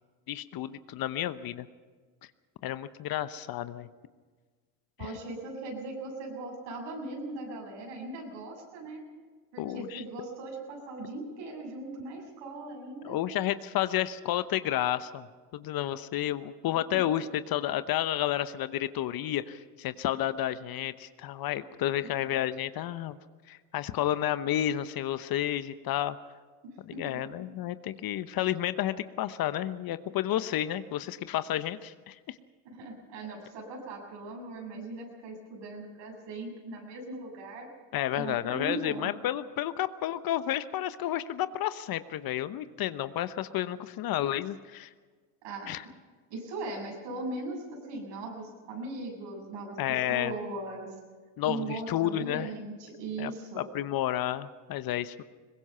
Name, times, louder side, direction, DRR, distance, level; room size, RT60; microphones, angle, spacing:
voice 1, 0.3-1.7 2.6-3.9 9.6-10.0 13.0-15.3 15.5-23.2 23.5-26.2 26.9-32.3 37.9-44.9 45.7-45.8 49.8-50.4 51.4-52.5 53.2-55.2, left 12 dB, 50° left, 13 dB, 1.0 m, -31 dB
voice 2, 5.0-9.0 9.5-13.2 16.9-17.0 26.6-27.2 32.7-37.7 38.2-39.1 45.4-45.8 46.3-51.0 51.4-53.7, right 2 dB, 65° right, 1 dB, 7.5 m, -39 dB
22.5 x 20.5 x 5.6 m, 1.5 s
hypercardioid pair, 85°, 46 cm